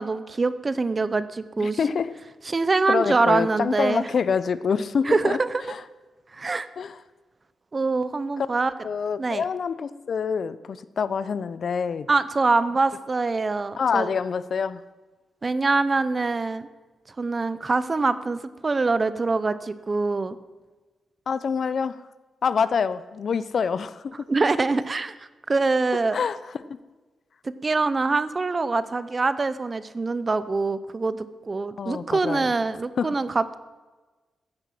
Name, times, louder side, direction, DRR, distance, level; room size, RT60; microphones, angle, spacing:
voice 1, 0.0-1.8 2.5-4.1 5.0-5.6 6.3-6.7 7.7-8.7 9.2-9.4 12.1-14.1 15.4-16.7 17.2-20.4 24.3-26.2 27.4-33.6, right 3 dB, 25° right, 14 dB, 0.7 m, -24 dB
voice 2, 1.6-2.1 2.9-5.4 5.7-5.8 6.8-7.0 8.4-8.5 8.8-12.1 13.8-14.8 21.3-22.0 22.4-24.0 26.1-26.4 31.8-32.5 33.0-33.1, left 6 dB, 50° left, 15 dB, 0.6 m, -26 dB
15.0 x 10.0 x 7.6 m, 1.2 s
wide cardioid pair, 135°, 0 cm